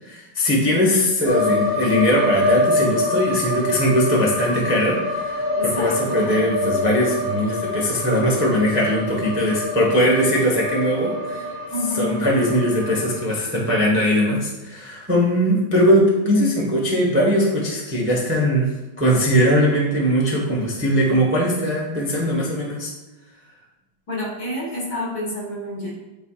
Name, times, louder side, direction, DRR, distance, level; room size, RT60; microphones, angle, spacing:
voice 1, 0.0-11.5 12.0-18.7 19.0-22.9, equal, 15° right, -4 dB, 0.4 m, -20 dB
sound 1, 1.3-13.2, left 2 dB, 70° left, 1.9 m, -26 dB
voice 2, 5.6-6.5 11.7-12.2 24.1-25.9, left 1 dB, 50° left, -4 dB, 2.2 m, -28 dB
9.1 x 4.4 x 2.4 m, 1.1 s
omnidirectional pair, 2.4 m